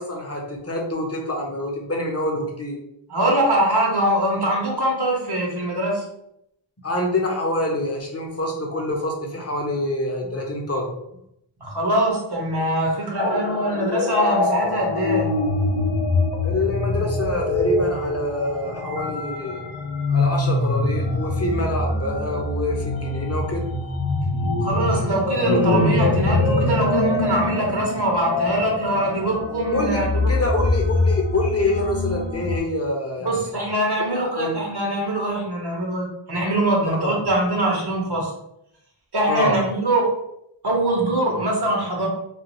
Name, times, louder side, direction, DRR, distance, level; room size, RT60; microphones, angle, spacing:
voice 1, 0.0-2.8 6.8-10.9 16.4-19.6 20.1-23.6 24.4-24.5 29.7-30.0 30.3-33.5 34.1-34.5 37.0-37.1 39.3-39.6, left 1 dB, 30° left, 0 dB, 0.7 m, -26 dB
voice 2, 3.1-6.0 11.6-15.3 24.6-30.2 33.2-38.3 39.1-40.1 40.6-42.1, right 1 dB, 50° right, -1 dB, 0.9 m, -23 dB
sound 1, 13.2-32.6, left 2 dB, 65° left, 0.5 m, -24 dB
2.5 x 2.4 x 2.9 m, 0.77 s
wide cardioid pair, 55°, 50 cm